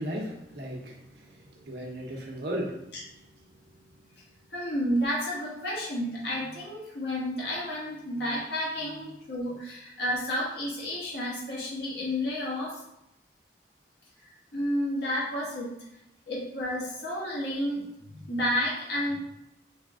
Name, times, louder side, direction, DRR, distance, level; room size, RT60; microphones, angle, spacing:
voice 1, 0.0-3.0 3.4-4.2, equal, 65° right, -1 dB, 1.0 m, -37 dB
voice 2, 4.5-12.8 14.5-15.8 16.3-19.2, equal, 70° left, -6 dB, 1.6 m, -31 dB
5.0 x 2.4 x 3.6 m, 0.83 s
head